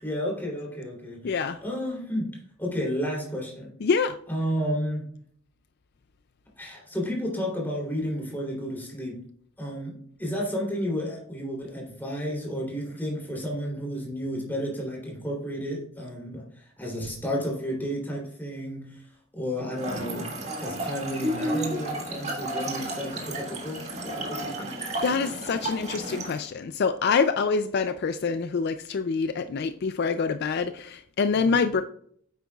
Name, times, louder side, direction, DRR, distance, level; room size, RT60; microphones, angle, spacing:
voice 1, 0.0-3.7 4.3-5.1 6.6-9.3 9.6-24.8 31.3-31.5, equal, 10° left, -3 dB, 3.1 m, -32 dB
voice 2, 1.2-1.6 3.8-4.2 25.0-31.8, left 5 dB, 50° left, 9 dB, 0.4 m, -26 dB
Trickle dribble / Fill (with liquid), 19.8-26.4, right 1 dB, 35° right, 1.7 m, -32 dB
9.2 x 8.5 x 2.3 m, 0.64 s
head